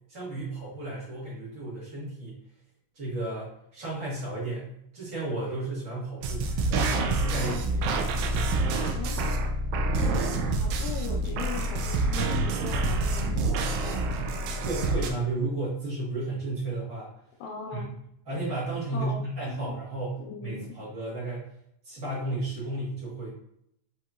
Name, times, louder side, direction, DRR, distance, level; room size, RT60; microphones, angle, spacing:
voice 1, 0.1-2.4 2.9-7.5 7.8-8.6 14.6-17.1 17.7-17.8 18.2-21.5 21.8-23.3, right 2 dB, 65° right, -8 dB, 0.7 m, -33 dB
sound 1, 6.2-15.1, right 2 dB, 90° right, 1.7 m, -27 dB
voice 2, 8.8-9.3 10.0-14.0 17.4-17.9 18.9-19.2 19.5-19.7 20.2-20.8, left 6 dB, 85° left, 1 dB, 2.4 m, -40 dB
7.8 x 2.8 x 2.4 m, 0.73 s
omnidirectional pair, 4.1 m